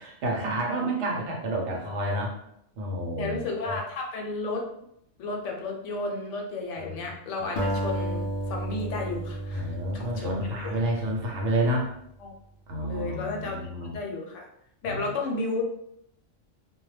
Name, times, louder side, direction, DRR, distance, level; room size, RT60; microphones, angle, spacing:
voice 1, 0.0-2.4 2.8-3.8 6.9-7.0 7.4-7.5 9.5-11.9 12.7-14.0 14.9-15.1, right 1 dB, 70° right, -1 dB, 0.9 m, -29 dB
voice 2, 3.2-4.6 5.2-10.3 10.6-10.8 12.2-12.4 12.8-14.5 14.8-15.6, left 3 dB, 75° left, 1 dB, 0.9 m, -33 dB
Acoustic guitar, 7.6-12.0, right 1 dB, 60° left, 0.5 m, -33 dB
2.2 x 2.2 x 3.1 m, 0.74 s
omnidirectional pair, 1.3 m